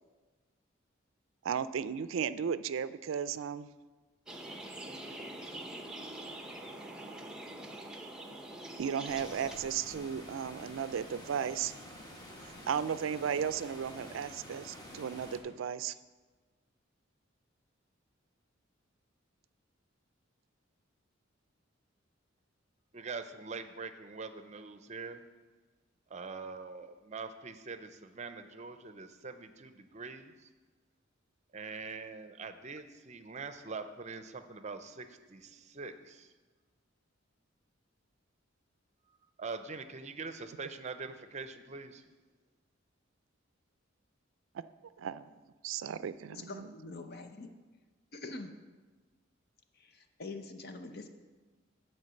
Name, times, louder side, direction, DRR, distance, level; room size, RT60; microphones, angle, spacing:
voice 1, 1.4-3.7 8.8-11.7 12.7-16.0 44.5-44.7 45.0-45.4 45.6-46.7, right 7 dB, 85° right, 15 dB, 0.4 m, -35 dB
sound 1, 4.3-9.6, right 1 dB, 5° right, 0.7 m, -44 dB
Water, 9.0-15.4, left 1 dB, 20° left, 1.3 m, -49 dB
voice 2, 22.9-25.2 26.1-30.5 31.5-36.3 39.4-42.0, right 4 dB, 35° right, 9 dB, 0.6 m, -43 dB
voice 3, 46.3-47.5 48.1-48.5 49.7-51.1, left 3 dB, 55° left, 7 dB, 0.8 m, -44 dB
9.7 x 4.6 x 7.6 m, 1.3 s
head